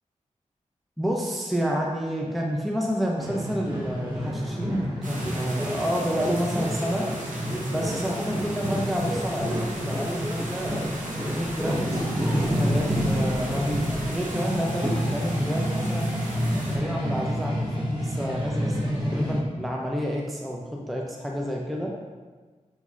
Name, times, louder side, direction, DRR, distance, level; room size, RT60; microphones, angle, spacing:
voice 1, 1.0-7.1 7.6-10.9 11.2-16.1 16.7-21.9, equal, ahead, -1 dB, 0.3 m, -29 dB
sound 1, 3.2-19.4, equal, 35° right, 1.0 m, -28 dB
sound 2, 5.0-16.8, right 1 dB, 85° right, 0.8 m, -39 dB
5.4 x 3.0 x 2.4 m, 1.3 s
wide cardioid pair, 145°, 13 cm